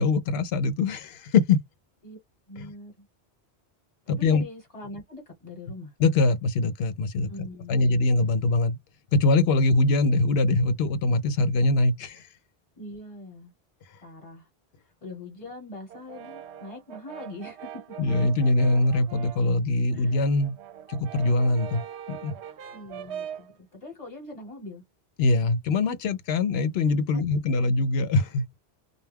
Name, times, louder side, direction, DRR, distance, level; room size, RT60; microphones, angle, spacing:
voice 1, 0.0-1.6 2.6-2.7 4.1-4.4 6.0-7.3 7.7-8.8 9.1-12.2 18.0-20.6 20.9-21.8 22.1-22.4 25.2-28.5, left 3 dB, 75° left, 0.8 m, -23 dB
voice 2, 2.5-3.1 4.1-5.9 7.3-8.0 12.7-13.5 14.0-14.5 15.0-17.8 19.9-20.2 22.7-24.8 27.1-27.2, left 2 dB, 35° left, 1.1 m, -42 dB
Brass instrument, 15.9-19.5 19.9-23.5, right 9 dB, 85° right, 0.8 m, -41 dB
2.3 x 2.2 x 3.3 m
omnidirectional pair, 1.1 m